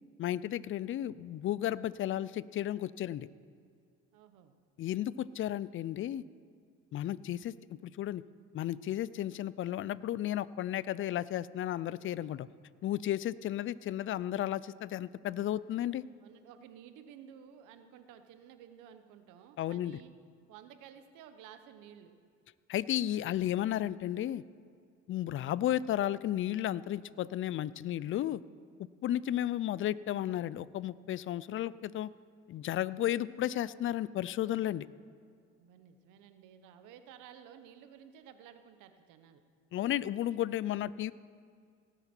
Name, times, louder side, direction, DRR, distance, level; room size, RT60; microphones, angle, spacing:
voice 1, 0.2-3.3 4.8-6.2 6.9-7.5 7.8-8.2 8.5-12.5 12.8-16.0 19.6-20.0 22.7-24.4 25.1-28.4 29.0-32.1 32.5-34.9 39.7-41.1, left 12 dB, 45° left, 19 dB, 0.4 m, -33 dB
voice 2, 4.1-4.6 16.2-20.1 20.5-22.1 35.6-39.4, right 9 dB, 80° right, 9 dB, 1.0 m, -54 dB
18.0 x 8.0 x 4.4 m, 2.2 s
supercardioid pair, 85°, 30 cm